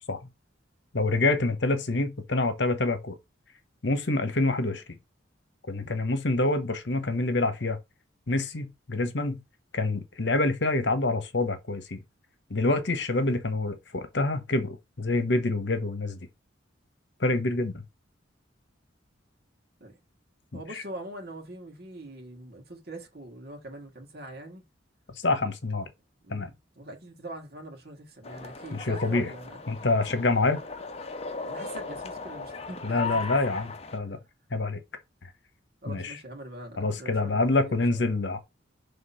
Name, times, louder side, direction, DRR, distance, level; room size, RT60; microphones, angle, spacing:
voice 1, 0.9-3.2 3.8-4.8 5.7-7.8 8.3-9.4 9.7-12.0 12.5-16.2 17.2-17.8 20.7-20.8 25.2-25.8 26.3-26.5 28.7-29.3 29.7-30.6 32.8-34.2 34.5-34.8 35.9-36.2 36.8-38.4, left 2 dB, 65° left, 1.1 m, -26 dB
voice 2, 20.5-24.6 26.2-29.6 30.4-30.5 31.4-33.2 35.8-38.0, right 1 dB, 50° right, 2.0 m, -43 dB
sound 1, 28.2-34.0, left 4 dB, 30° left, 0.8 m, -37 dB
6.0 x 3.5 x 5.5 m
head